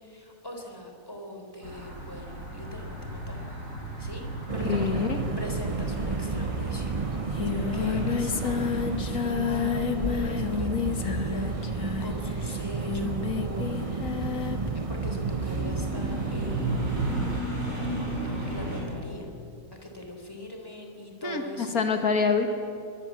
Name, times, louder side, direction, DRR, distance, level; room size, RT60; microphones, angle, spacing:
voice 1, 0.0-3.4 4.0-4.2 4.5-5.0 5.4-6.9 7.4-14.0 14.7-17.1 18.2-19.3 19.8-21.8, left 1 dB, 15° left, 2 dB, 3.8 m, -42 dB
sound 1, 1.6-18.8, right 1 dB, 65° right, 5.8 m, -36 dB
sound 2, 4.5-17.4, right 4 dB, 30° right, 0.7 m, -32 dB
voice 2, 4.6-5.2 21.2-22.5, left 5 dB, 80° left, 5 dB, 2.2 m, -26 dB
Singing, 6.7-6.8 7.0-14.7, left 7 dB, 65° left, 1.9 m, -30 dB
23.0 x 23.0 x 7.5 m, 2.5 s
omnidirectional pair, 1.5 m